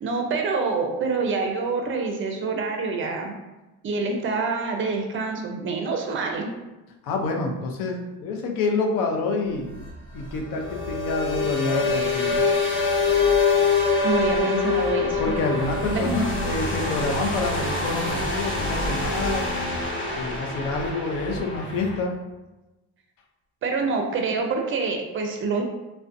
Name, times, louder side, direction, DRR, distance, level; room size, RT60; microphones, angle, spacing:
voice 1, 0.0-3.4 3.8-6.5 14.0-15.3 15.9-16.2 23.6-25.6, right 4 dB, 40° right, 3 dB, 0.5 m, -26 dB
voice 2, 7.0-9.7 10.1-12.5 15.2-19.5 20.1-22.2, left 3 dB, 75° left, 2 dB, 0.5 m, -27 dB
sound 1, 9.6-22.0, left 4 dB, 35° left, 0.7 m, -25 dB
2.4 x 2.1 x 2.5 m, 1.1 s
cardioid pair, 105°, 34 cm